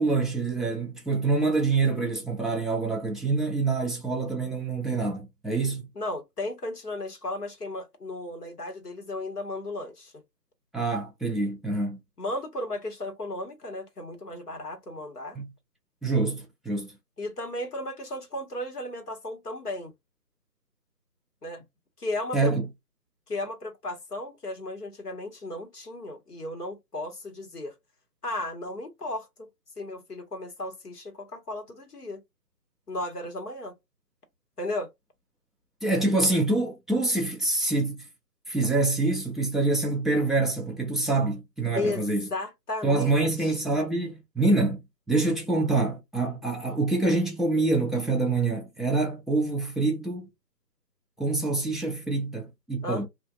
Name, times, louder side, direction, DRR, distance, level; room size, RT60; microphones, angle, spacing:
voice 1, 0.0-5.8 10.7-12.0 15.4-15.5 16.0-16.9 22.3-22.7 35.8-38.1 38.5-42.3 42.8-44.8 45.1-50.3 51.2-53.1, right 3 dB, ahead, 0.5 m, -26 dB
voice 2, 5.9-10.1 12.2-15.4 17.2-19.9 21.4-21.6 22.0-22.5 23.3-27.7 28.2-29.5 29.8-32.2 32.9-33.7 34.6-34.9 41.7-43.6 52.8-53.1, left 2 dB, 65° left, 1.3 m, -35 dB
2.4 x 2.4 x 2.4 m
figure-of-eight pair, 175°, 49 cm